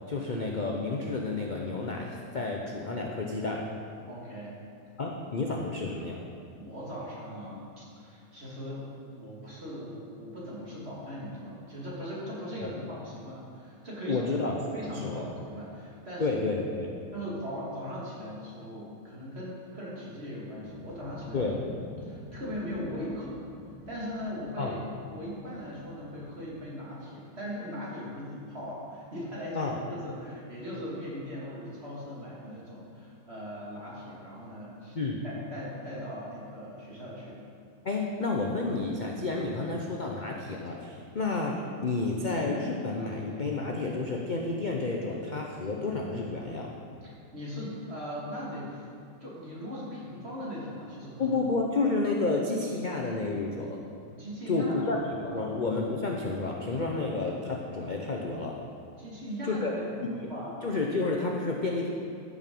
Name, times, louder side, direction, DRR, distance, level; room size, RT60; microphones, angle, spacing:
voice 1, 0.1-3.6 5.0-6.2 12.6-12.7 14.1-14.6 14.8-15.3 16.2-16.9 21.3-21.6 24.6-24.8 29.5-29.8 34.9-35.2 37.8-46.7 51.2-53.8 54.5-55.0 55.2-58.6 59.5-59.7 60.2-60.3 60.6-61.9, left 3 dB, 50° left, 0 dB, 0.6 m, -30 dB
voice 2, 4.1-4.6 6.6-14.3 14.7-16.4 17.1-23.3 23.9-24.8 25.1-35.0 35.2-37.4 47.0-48.9 49.2-51.4 54.1-54.9 55.2-55.5 59.0-60.6, equal, 35° right, -6 dB, 2.7 m, -39 dB
sound 1, 20.5-26.6, left 2 dB, 90° left, 2.1 m, -48 dB
13.5 x 6.3 x 5.4 m, 2.4 s
omnidirectional pair, 1.9 m